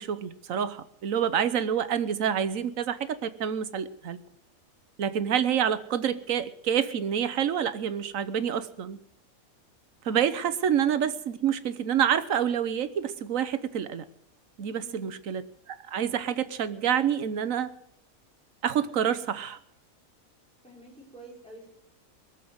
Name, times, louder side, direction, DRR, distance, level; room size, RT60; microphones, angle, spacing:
voice 1, 0.0-4.2 5.0-9.0 10.0-14.0 14.6-15.4 15.7-17.7 18.6-19.6, right 8 dB, 70° right, 13 dB, 1.3 m, -27 dB
voice 2, 10.1-10.5 14.7-15.1 20.6-21.7, right 1 dB, 5° left, -4 dB, 5.5 m, -49 dB
21.0 x 7.4 x 7.9 m, 0.74 s
omnidirectional pair, 1.5 m